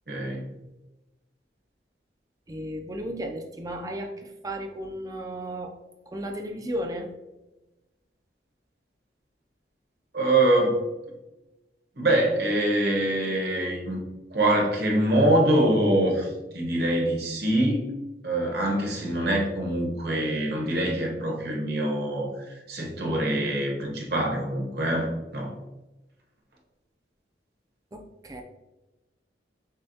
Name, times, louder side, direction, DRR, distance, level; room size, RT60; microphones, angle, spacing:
voice 1, 0.1-0.5 10.1-10.8 12.0-14.0 14.3-17.9 18.2-25.5, right 1 dB, 60° right, -1 dB, 1.1 m, -24 dB
voice 2, 2.5-5.7 6.1-7.1 27.9-28.4, right 1 dB, 20° right, 4 dB, 0.4 m, -34 dB
6.5 x 2.3 x 2.7 m, 1.0 s
head